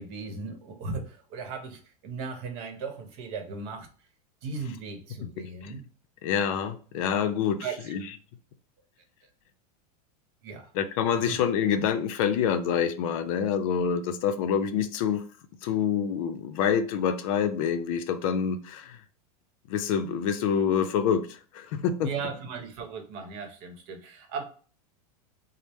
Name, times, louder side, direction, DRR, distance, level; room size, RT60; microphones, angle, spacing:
voice 1, 0.0-3.9 4.4-5.8 7.6-8.0 10.4-10.7 11.3-11.4 22.0-24.4, right 4 dB, 50° right, 0.9 m, -37 dB
voice 2, 5.4-5.8 6.2-8.1 10.7-15.2 15.6-19.0 19.7-22.1, left 7 dB, 60° left, 0.5 m, -27 dB
4.1 x 2.0 x 3.4 m
supercardioid pair, 155°, 20 cm